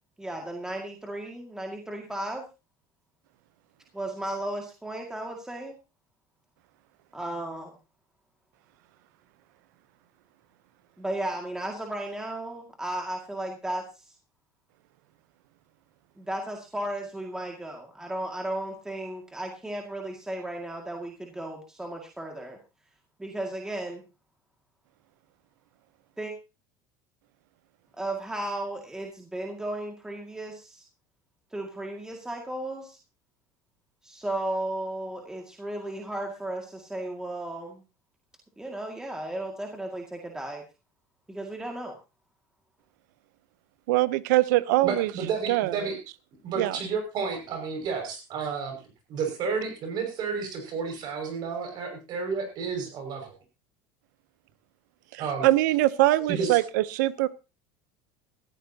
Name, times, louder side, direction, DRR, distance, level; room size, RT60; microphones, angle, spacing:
voice 1, 0.2-2.4 3.9-5.8 7.1-7.8 11.0-14.1 16.2-22.6 23.2-24.0 26.2-26.3 28.0-30.8 31.5-33.0 34.0-37.8 38.6-40.6 41.3-41.9, right 1 dB, 5° right, 2 dB, 2.1 m, -35 dB
voice 2, 43.9-45.1 45.5-45.7 46.6-46.8 55.1-57.3, right 17 dB, 90° right, 18 dB, 0.8 m, -23 dB
voice 3, 44.8-46.0 46.4-48.8 49.1-53.3 55.2-55.5 56.3-56.6, right 5 dB, 50° right, 5 dB, 6.0 m, -31 dB
17.5 x 14.5 x 2.9 m, 0.28 s
supercardioid pair, 130°, 9 cm